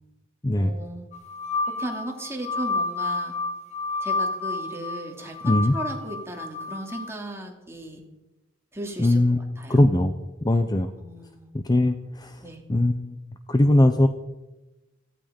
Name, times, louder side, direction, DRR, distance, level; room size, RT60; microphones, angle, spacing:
voice 1, 0.6-1.1 1.8-3.3 4.0-8.0 8.7-9.2 9.6-9.8 11.0-11.5 12.4-12.6, right 1 dB, 15° right, 1 dB, 2.7 m, -36 dB
sound 1, 1.1-7.1, left 3 dB, 35° left, 2.3 m, -30 dB
voice 2, 9.0-10.9 11.5-12.4 12.7-13.2 13.5-14.1, left 1 dB, 20° left, 8 dB, 0.7 m, -21 dB
16.5 x 15.0 x 5.2 m, 1.0 s
head